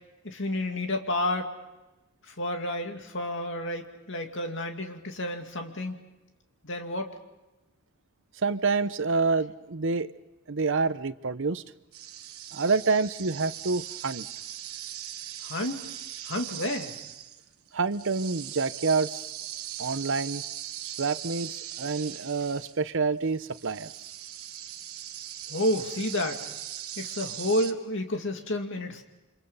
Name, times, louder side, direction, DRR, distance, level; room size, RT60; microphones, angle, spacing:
voice 1, 0.2-1.5 2.3-6.0 6.6-7.2 15.4-15.9 16.2-16.9 25.5-26.5 27.0-29.0, left 1 dB, 60° left, 5 dB, 2.5 m, -30 dB
voice 2, 8.4-10.1 10.5-11.6 12.5-14.3 17.7-19.3 19.8-20.4 20.8-23.9, right 4 dB, 60° right, 14 dB, 0.8 m, -27 dB
sound 1, 11.9-22.9 23.3-27.7, right 11 dB, 85° right, 1.3 m, -40 dB
28.0 x 26.0 x 5.6 m, 1.0 s
head